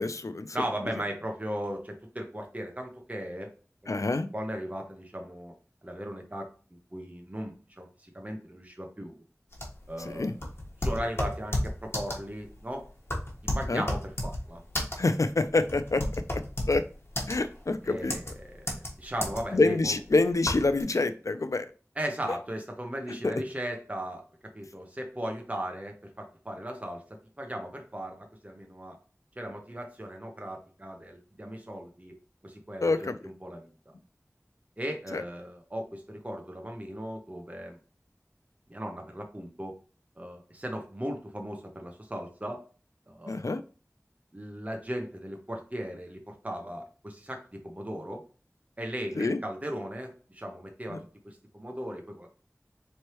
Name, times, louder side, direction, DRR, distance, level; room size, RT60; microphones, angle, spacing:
voice 1, 0.0-0.6 3.9-4.3 10.0-10.3 13.7-13.8 15.0-16.0 16.3-16.4 16.7-16.8 17.3-18.2 19.5-21.7 23.2-23.3 32.8-33.2 35.1-35.2 43.3-43.6 49.2-49.4 50.9-51.0, left 3 dB, 75° left, 11 dB, 0.4 m, -26 dB
voice 2, 0.5-3.5 3.8-5.5 5.8-9.2 9.9-10.3 10.8-12.8 13.5-14.6 17.8-20.0 22.0-24.2 24.5-27.0 27.4-29.0 29.4-32.2 32.4-33.9 34.8-37.8 38.7-39.8 40.2-42.6 43.1-43.4 44.3-48.2 48.8-52.3, equal, 25° right, 2 dB, 0.8 m, -37 dB
sound 1, 9.5-20.8, left 1 dB, 50° left, 1.3 m, -33 dB
4.4 x 3.2 x 2.9 m, 0.37 s
wide cardioid pair, 40°, 5 cm